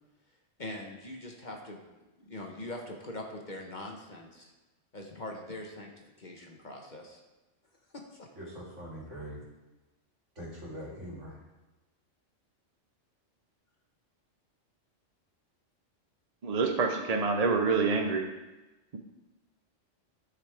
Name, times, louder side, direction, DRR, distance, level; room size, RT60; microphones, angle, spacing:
voice 1, 0.6-1.9 2.2-4.5 4.9-5.9 6.2-7.2 7.9-8.3, left 1 dB, 40° left, 1 dB, 1.1 m, -42 dB
voice 2, 8.4-9.4 10.4-11.4, equal, 75° right, -5 dB, 2.7 m, -42 dB
voice 3, 16.4-18.3, right 4 dB, 40° right, 3 dB, 0.6 m, -27 dB
13.0 x 5.0 x 3.4 m, 1.1 s
omnidirectional pair, 1.3 m